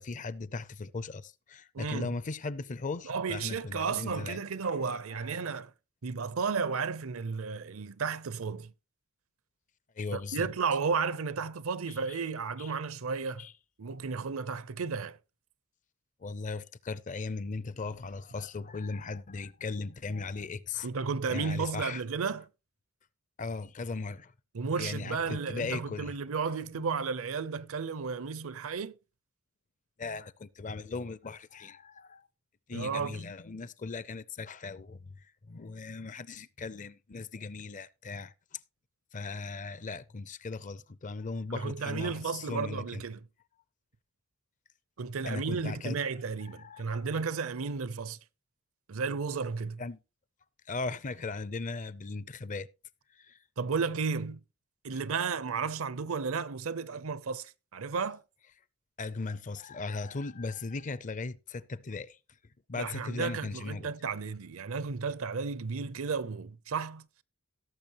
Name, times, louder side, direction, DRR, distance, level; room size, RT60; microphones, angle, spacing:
voice 1, 0.0-4.4 5.1-5.4 10.0-10.5 11.9-12.2 12.6-12.7 13.4-13.5 16.2-20.9 21.3-22.0 23.4-24.3 24.8-26.2 26.7-26.9 30.0-32.3 32.7-38.6 39.1-43.0 45.2-46.0 46.5-47.1 49.8-50.0 50.7-52.7 53.1-53.4 59.0-62.2 62.7-63.9, left 3 dB, 35° left, 0.5 m, -38 dB
voice 2, 1.7-2.1 3.0-5.7 6.0-8.7 10.1-13.5 13.8-15.2 20.8-22.5 24.5-29.0 32.7-33.2 41.5-43.3 45.0-48.2 48.9-49.8 53.6-54.4 54.8-58.2 62.7-67.1, right 5 dB, 65° right, 0.6 m, -33 dB
17.0 x 7.0 x 3.0 m
head